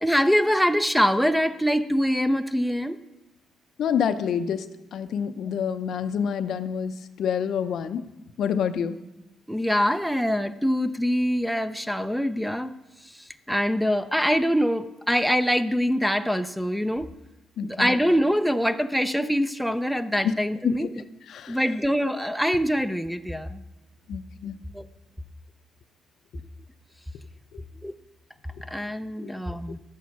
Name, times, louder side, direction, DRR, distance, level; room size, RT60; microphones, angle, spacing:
voice 1, 0.0-3.0 9.5-12.7 13.0-13.2 13.5-17.1 17.6-21.0 21.5-23.6 24.7-24.9 27.8-27.9 28.6-29.8, equal, ahead, 11 dB, 0.6 m, -24 dB
voice 2, 3.8-4.6 4.9-6.9 7.2-8.0 8.4-9.0 17.6-18.0 20.2-20.3 20.6-20.9 21.3-21.6 24.1-24.6 29.2-29.3, left 7 dB, 70° left, 10 dB, 0.7 m, -27 dB
12.5 x 8.5 x 5.9 m, 0.99 s
cardioid pair, 80°, 0 cm